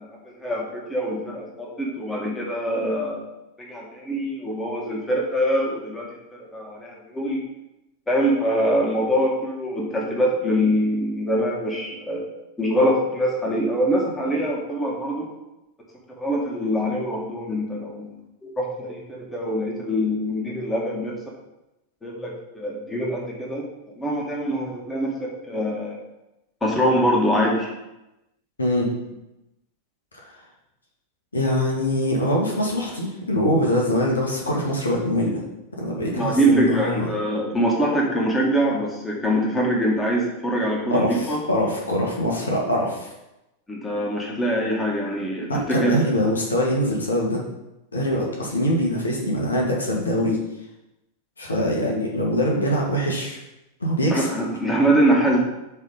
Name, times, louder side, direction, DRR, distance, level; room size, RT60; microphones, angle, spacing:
voice 1, 0.0-3.2 3.6-7.4 8.1-12.2 12.6-15.3 16.2-18.1 18.4-21.2 22.0-23.7 24.0-26.0 26.6-27.7 36.2-41.4 43.7-46.0 54.1-55.4, equal, 10° left, -2 dB, 1.9 m, -24 dB
voice 2, 28.6-28.9 31.3-35.4 35.8-37.1 40.9-43.1 45.5-47.4 47.9-50.4 51.4-53.4 53.8-54.3, equal, 75° left, -2 dB, 1.5 m, -23 dB
8.1 x 3.7 x 5.4 m, 0.94 s
figure-of-eight pair, 90°, 0 cm